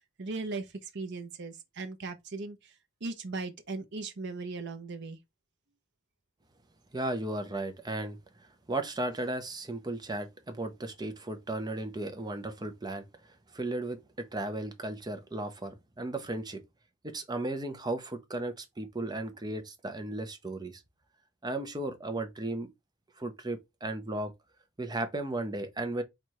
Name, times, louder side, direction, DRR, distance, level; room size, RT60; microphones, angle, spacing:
voice 1, 0.2-2.7 3.0-5.2, right 3 dB, 55° right, 0.7 m, -38 dB
voice 2, 6.9-16.6 17.0-20.8 21.4-22.7 23.2-24.3 24.8-26.0, right 2 dB, 20° right, 0.7 m, -35 dB
4.3 x 2.5 x 4.6 m
head